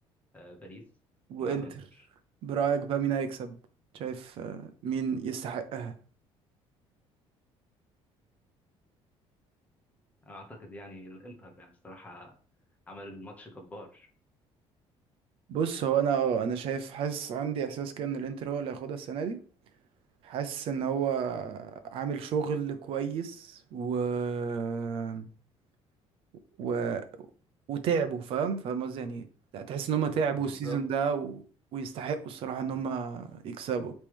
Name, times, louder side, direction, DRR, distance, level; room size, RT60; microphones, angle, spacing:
voice 1, 0.3-0.9 1.4-1.7 10.2-12.3 12.9-14.1 30.4-30.8, equal, 15° left, 1.2 m, -45 dB
voice 2, 1.3-1.7 2.4-3.6 3.9-5.9 15.5-19.4 20.2-25.3 26.6-27.0 27.7-29.3 29.5-31.4 31.7-33.9, right 7 dB, 55° right, 0.9 m, -31 dB
8.5 x 3.3 x 3.6 m
cardioid pair, 170°, 11 cm